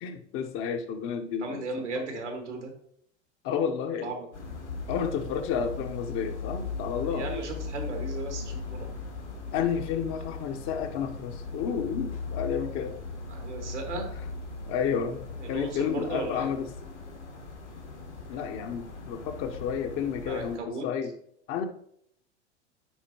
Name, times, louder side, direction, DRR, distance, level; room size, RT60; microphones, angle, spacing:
voice 1, 0.0-1.6 1.9-2.3 3.4-4.2 4.9-7.3 9.5-13.0 13.9-14.0 14.7-15.2 15.5-16.7 18.3-21.1 21.5-21.7, left 7 dB, 40° left, 6 dB, 0.9 m, -31 dB
voice 2, 1.4-2.7 4.0-4.3 7.1-8.9 13.3-14.1 15.5-16.5 20.3-20.8, right 3 dB, 80° right, 3 dB, 1.8 m, -35 dB
sound 1, 4.3-20.6, left 4 dB, 80° left, 2.0 m, -38 dB
10.0 x 4.1 x 2.9 m, 0.68 s
figure-of-eight pair, 85°, 35 cm